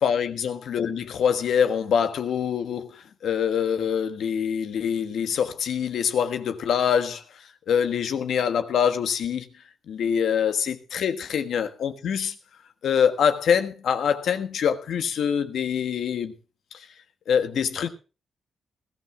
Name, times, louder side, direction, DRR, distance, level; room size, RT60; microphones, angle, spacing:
voice 1, 0.0-7.2 7.7-9.5 9.9-12.3 12.8-16.3 16.7-16.9 17.3-17.9, left 7 dB, 75° left, 1.4 m, -24 dB
20.5 x 14.0 x 2.3 m
cardioid pair, 70°, 0 cm